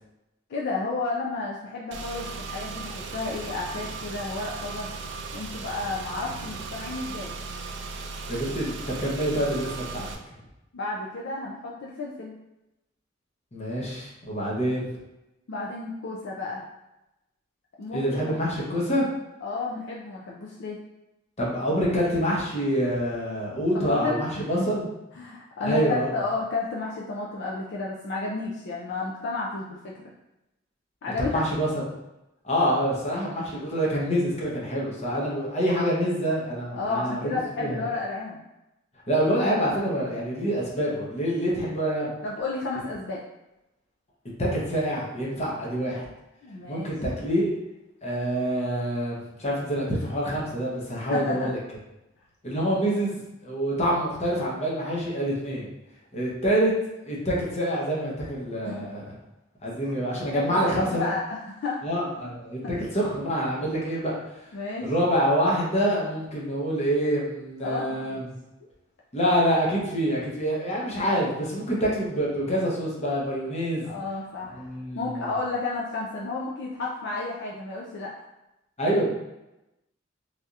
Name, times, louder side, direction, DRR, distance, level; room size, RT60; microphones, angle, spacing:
voice 1, 0.5-4.9 5.3-7.4 10.7-12.3 15.5-16.7 17.8-18.3 19.4-20.8 23.7-24.7 25.1-30.0 31.0-31.4 36.7-38.4 42.2-43.2 46.4-46.9 51.1-51.5 58.6-58.9 59.8-59.9 60.2-61.8 62.1-62.3 64.5-64.9 67.6-68.3 73.8-78.1, left 3 dB, 60° left, -3 dB, 0.4 m, -32 dB
Car / Engine, 1.9-10.2, right 4 dB, 60° right, 0.4 m, -37 dB
voice 2, 8.3-10.1 13.5-14.9 17.9-19.1 21.4-24.9 25.6-26.1 31.3-31.7 32.4-37.3 37.6-37.8 39.1-42.1 44.4-46.0 46.7-47.5 48.0-51.6 52.4-55.7 56.1-56.7 57.0-59.0 59.6-61.1 61.8-64.3 64.8-68.3 69.1-73.9 74.6-75.3 78.8-79.1, equal, 35° left, -4 dB, 0.8 m, -26 dB
3.3 x 2.7 x 2.4 m, 0.94 s
head